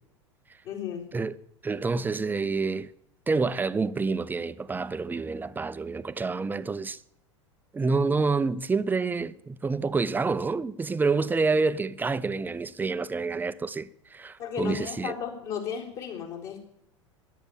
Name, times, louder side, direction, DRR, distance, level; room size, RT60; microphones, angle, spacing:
voice 1, 0.6-1.1 14.4-16.6, left 7 dB, 50° left, 3.9 m, -34 dB
voice 2, 1.6-2.9 3.3-7.0 7.7-15.1, right 4 dB, 10° right, 0.6 m, -28 dB
13.0 x 10.5 x 9.0 m
figure-of-eight pair, 80°, 16 cm